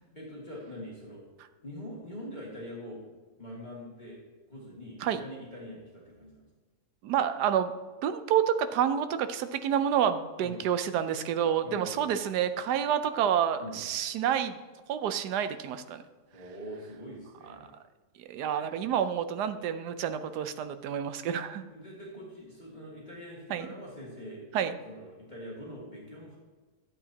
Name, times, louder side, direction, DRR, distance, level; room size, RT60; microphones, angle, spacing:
voice 1, 0.1-1.2 1.6-3.0 3.4-4.2 4.5-6.4 10.4-10.7 11.6-12.1 13.6-13.9 16.3-17.7 21.7-24.5 24.8-26.4, equal, 30° left, -6 dB, 2.0 m, -43 dB
voice 2, 7.0-7.7 8.0-14.6 14.9-16.0 18.2-21.6 23.5-23.7 24.5-24.8, right 9 dB, 85° right, 10 dB, 1.2 m, -28 dB
12.0 x 8.1 x 2.8 m, 1.3 s
omnidirectional pair, 1.7 m